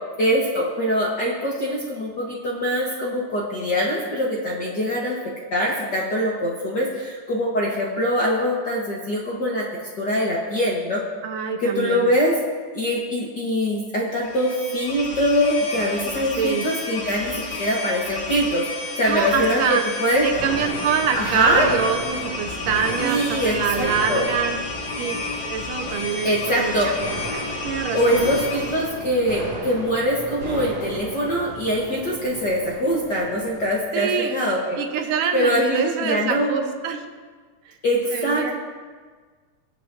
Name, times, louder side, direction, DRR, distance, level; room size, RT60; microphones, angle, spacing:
voice 1, 0.2-5.2 5.5-9.6 10.0-11.0 11.6-12.3 12.7-20.3 21.1-21.7 23.0-24.3 26.2-26.9 27.9-34.8 35.3-36.5 37.8-38.5, equal, 50° left, -4 dB, 1.3 m, -23 dB
voice 2, 11.2-12.1 16.4-16.6 19.1-19.8 20.2-24.6 25.0-25.2 25.5-26.9 27.3-28.3 33.9-34.3 34.8-37.0 38.1-38.5, right 7 dB, 85° right, 4 dB, 2.6 m, -25 dB
sound 1, 14.2-29.0, left 3 dB, 65° left, 3.3 m, -32 dB
sound 2, 20.3-33.8, right 2 dB, 50° right, 3.4 m, -35 dB
24.0 x 7.9 x 2.7 m, 1.5 s
omnidirectional pair, 3.7 m